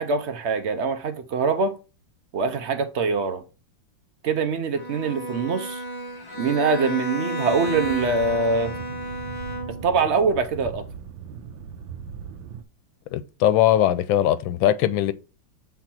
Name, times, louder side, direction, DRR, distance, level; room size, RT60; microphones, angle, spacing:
voice 1, 0.0-1.8 2.3-3.4 4.2-5.8 6.4-8.7 9.7-10.8, right 4 dB, 65° right, 0.7 m, -24 dB
Bowed string instrument, 4.7-10.0, equal, 15° left, 0.9 m, -31 dB
sound 1, 7.5-12.6, right 7 dB, 85° right, 1.4 m, -39 dB
voice 2, 13.1-15.1, left 12 dB, 90° left, 1.4 m, -20 dB
7.0 x 3.8 x 4.3 m
omnidirectional pair, 2.1 m